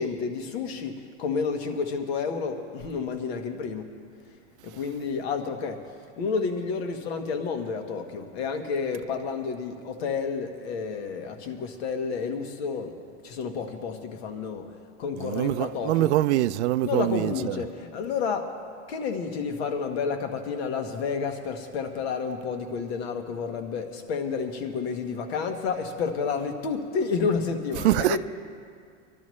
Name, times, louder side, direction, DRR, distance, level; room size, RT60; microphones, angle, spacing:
voice 1, 0.0-3.9 4.6-5.8 6.2-12.9 13.2-14.7 15.0-16.1 16.8-18.5 18.9-28.2, left 5 dB, 60° left, 1.4 m, -30 dB
voice 2, 15.2-17.6 27.8-28.2, right 14 dB, 70° right, 0.5 m, -24 dB
24.5 x 12.0 x 3.2 m
supercardioid pair, 170°, 36 cm